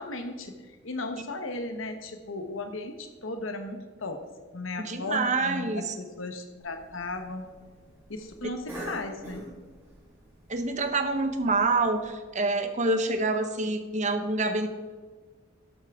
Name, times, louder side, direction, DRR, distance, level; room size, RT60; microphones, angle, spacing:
voice 1, 0.0-4.2 4.5-7.5 8.1-9.5, left 2 dB, 85° left, 6 dB, 1.2 m, -36 dB
voice 2, 4.8-5.9 10.5-14.7, right 3 dB, 40° right, 7 dB, 1.0 m, -27 dB
Cough, 6.6-12.1, right 1 dB, 15° right, 3.3 m, -46 dB
12.0 x 8.3 x 3.7 m, 1.4 s
head